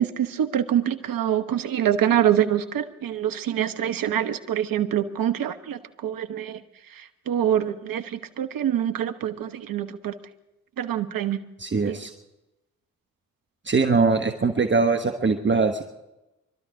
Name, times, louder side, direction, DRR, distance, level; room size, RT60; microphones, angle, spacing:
voice 1, 0.0-6.6 6.9-10.1 10.8-11.4 11.9-12.0, right 10 dB, 55° right, 11 dB, 1.1 m, -25 dB
voice 2, 11.6-12.1 13.6-15.8, right 4 dB, 30° right, 6 dB, 1.2 m, -22 dB
22.5 x 12.5 x 4.8 m, 0.95 s
hypercardioid pair, 45°, 41 cm